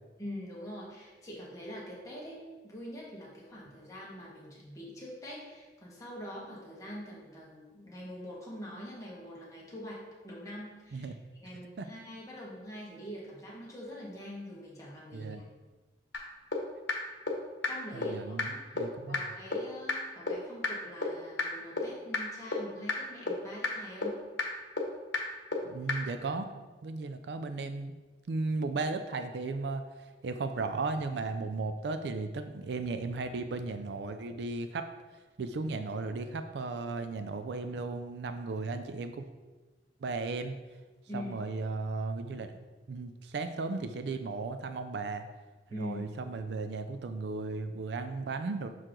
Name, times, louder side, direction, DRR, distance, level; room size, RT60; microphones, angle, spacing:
voice 1, 0.2-11.1 11.4-15.5 17.7-24.3 41.1-41.4 45.7-46.1, equal, 20° left, -5 dB, 1.6 m, -44 dB
voice 2, 15.1-15.4 17.9-19.2 25.6-27.9 28.3-29.8 30.2-34.9 35.4-39.2 40.0-40.6 41.1-42.5 42.9-45.3 45.7-48.7, right 3 dB, 70° right, 8 dB, 0.4 m, -35 dB
sound 1, 16.1-16.2 16.5-16.6 16.9-17.0 17.3-17.4 17.6-17.7 18.0-18.1 18.4-18.5 18.8-18.9 19.1-19.2 19.5-19.6 19.9-20.0 20.3-20.4 20.6-20.7 21.0-21.1 21.4-21.5 21.8-21.9 22.1-22.2 22.5-22.6 22.9-23.0 23.3-23.4 23.6-23.7 24.0-24.1 24.4-24.5 24.8-24.9 25.1-25.2 25.5-25.6 25.9-26.0, left 4 dB, 75° left, 1.0 m, -30 dB
6.2 x 4.5 x 3.8 m, 1.3 s
head